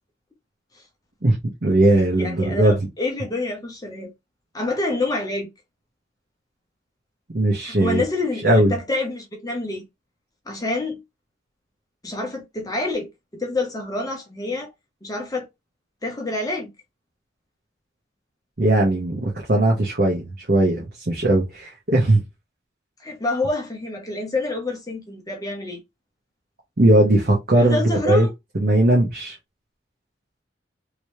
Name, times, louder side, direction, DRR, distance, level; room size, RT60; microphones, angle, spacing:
voice 1, 1.2-2.7 7.3-8.0 8.4-8.7 18.6-22.2 26.8-28.3 28.5-29.4, right 1 dB, 55° right, 1.0 m, -19 dB
voice 2, 2.2-4.1 4.5-5.5 7.6-9.8 10.5-11.0 12.0-13.1 13.4-14.7 15.0-15.5 16.0-16.7 23.0-25.8 27.5-28.3, left 2 dB, 20° left, 0.9 m, -27 dB
3.1 x 2.9 x 3.1 m
head